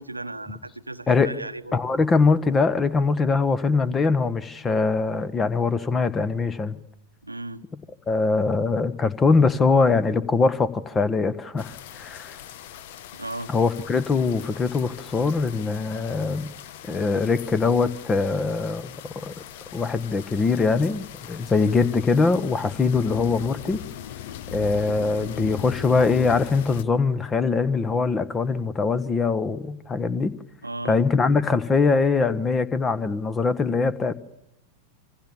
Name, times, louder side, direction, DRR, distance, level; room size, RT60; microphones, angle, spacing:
voice 1, 0.0-1.8 7.2-7.6 13.1-13.5 30.6-31.0, right 2 dB, 85° right, 12 dB, 1.0 m, -35 dB
voice 2, 1.7-6.8 8.1-12.3 13.5-16.5 16.9-19.3 19.7-23.8 24.5-30.3 30.8-34.1, left 4 dB, 20° left, 17 dB, 1.4 m, -22 dB
sound 1, 11.6-26.8, left 11 dB, 50° left, 1.1 m, -40 dB
27.0 x 25.5 x 7.3 m, 0.80 s
figure-of-eight pair, 90°, 0 cm